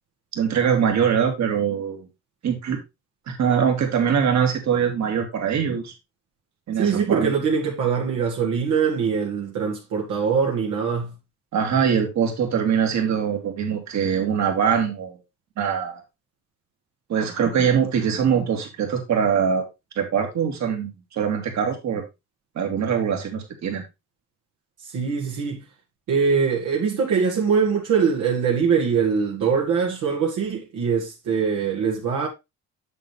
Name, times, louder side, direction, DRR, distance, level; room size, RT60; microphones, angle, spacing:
voice 1, 0.3-2.1 2.4-2.8 3.3-5.9 6.7-7.3 11.5-15.2 15.6-16.0 17.1-19.6 20.0-22.0 22.6-23.8, right 7 dB, 65° right, 2.3 m, -23 dB
voice 2, 6.8-11.1 24.8-25.6 26.1-32.3, right 6 dB, 85° right, 2.0 m, -22 dB
7.7 x 6.8 x 3.3 m
cardioid pair, 90°, 30 cm